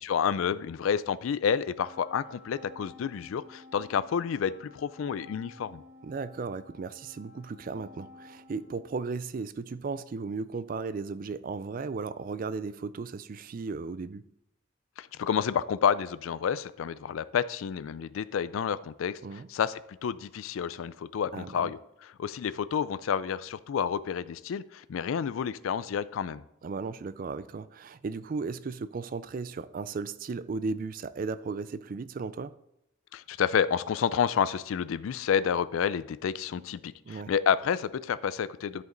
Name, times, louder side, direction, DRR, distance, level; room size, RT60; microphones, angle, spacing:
voice 1, 0.0-5.8 15.0-19.2 19.5-21.8 22.2-26.4 33.1-38.8, left 7 dB, 85° left, 0.4 m, -29 dB
Wind instrument woodwind instrument, 1.8-9.4, left 2 dB, 15° right, 1.0 m, -52 dB
voice 2, 6.0-14.2 19.2-19.5 21.3-21.7 26.6-32.5 37.1-37.3, right 4 dB, 45° right, 0.3 m, -35 dB
11.0 x 5.2 x 3.8 m
head